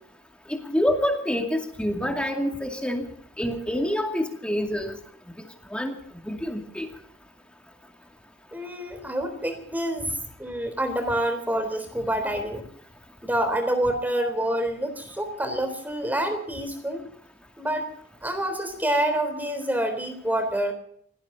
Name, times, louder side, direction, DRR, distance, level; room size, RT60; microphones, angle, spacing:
voice 1, 0.5-3.0 3.4-5.0 5.7-5.9 6.2-6.9, equal, 5° left, 3 dB, 2.4 m, -27 dB
voice 2, 8.5-12.7 13.2-17.0 17.6-17.9 18.2-20.7, right 1 dB, 10° right, 7 dB, 3.7 m, -27 dB
28.0 x 18.0 x 2.8 m, 0.65 s
head